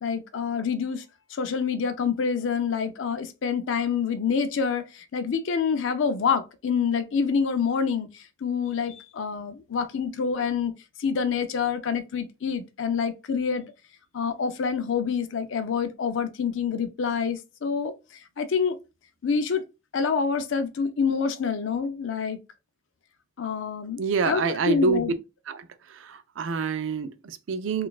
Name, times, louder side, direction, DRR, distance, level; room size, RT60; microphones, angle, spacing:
voice 1, 0.0-1.0 1.3-10.7 11.0-13.7 14.1-18.8 19.2-19.6 19.9-22.4 23.4-25.2, left 6 dB, 70° left, 0.4 m, -27 dB
voice 2, 24.0-25.0 25.5-25.7 26.0-27.9, right 4 dB, 75° right, 0.4 m, -27 dB
3.9 x 2.4 x 2.3 m
head